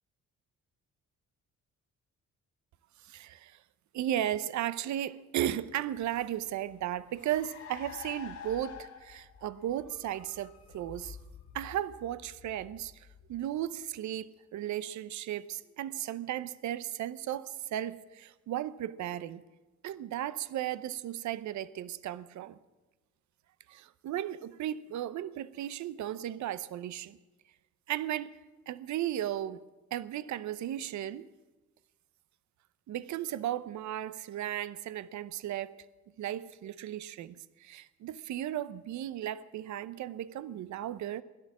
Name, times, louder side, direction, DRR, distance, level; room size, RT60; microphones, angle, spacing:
voice 1, 3.0-3.6 3.9-11.2 11.5-19.4 19.8-22.6 23.7-27.2 27.9-28.3 28.7-29.6 29.9-31.3 32.9-35.8 36.2-41.2, right 12 dB, 70° right, 0.7 m, -35 dB
Car, 6.0-13.8, left 7 dB, 75° left, 3.0 m, -49 dB
17.0 x 11.5 x 7.4 m
cardioid pair, 90°, 30 cm